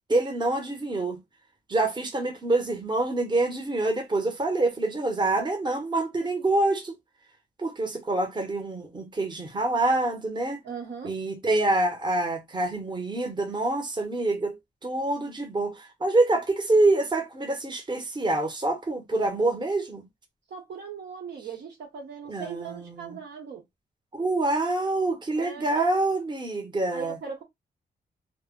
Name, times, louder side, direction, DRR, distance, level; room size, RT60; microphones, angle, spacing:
voice 1, 0.1-1.2 1.7-6.9 7.6-10.6 11.0-14.5 14.8-20.0 22.3-23.2 24.1-27.2, right 2 dB, 25° right, 0.8 m, -26 dB
voice 2, 10.6-11.1 20.5-23.6 25.4-25.9 26.9-27.4, right 6 dB, 80° right, 1.0 m, -39 dB
2.1 x 2.0 x 3.6 m
cardioid pair, 90°, 17 cm